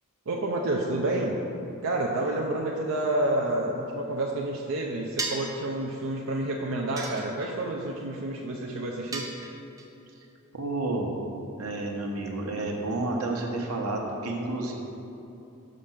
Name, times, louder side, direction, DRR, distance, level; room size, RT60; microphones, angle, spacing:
voice 1, 0.3-1.4 1.8-9.3, right 1 dB, 65° right, -1 dB, 0.5 m, -29 dB
sound 1, 5.2-5.6 7.0-7.7 9.1-9.9, right 3 dB, 15° right, 0.6 m, -34 dB
voice 2, 10.5-11.1 11.6-14.7, right 2 dB, 85° right, 0 dB, 1.0 m, -30 dB
6.2 x 5.1 x 5.7 m, 2.8 s
head